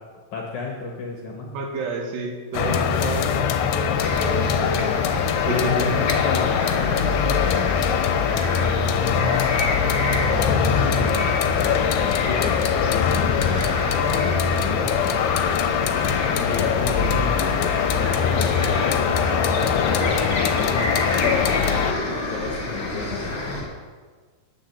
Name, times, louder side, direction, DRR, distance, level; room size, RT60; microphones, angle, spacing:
voice 1, 0.3-1.5 4.2-4.6 5.4-15.3 16.4-21.0 21.4-23.6, left 3 dB, 60° left, -1 dB, 2.2 m, -32 dB
voice 2, 1.5-3.4 3.7-4.9 5.4-5.9, right 3 dB, 80° right, 1 dB, 3.9 m, -29 dB
sound 1, 2.5-21.9, left 7 dB, 75° left, 2.5 m, -22 dB
sound 2, 4.0-23.6, left 2 dB, 30° left, 3.2 m, -29 dB
Rain, 13.5-21.4, right 2 dB, 55° right, 4.0 m, -42 dB
10.0 x 9.3 x 7.4 m, 1.5 s
omnidirectional pair, 4.8 m